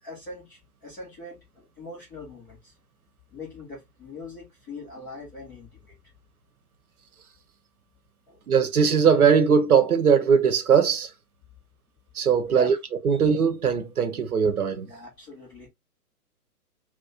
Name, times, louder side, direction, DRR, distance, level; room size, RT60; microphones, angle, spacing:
voice 1, 0.0-2.7 3.3-6.0 8.3-8.4 12.5-12.8 14.8-15.7, left 3 dB, 10° left, 0.6 m, -42 dB
voice 2, 8.5-11.1 12.1-12.8 13.0-14.9, right 6 dB, 65° right, 0.9 m, -20 dB
2.9 x 2.1 x 3.5 m
figure-of-eight pair, 125°, 47 cm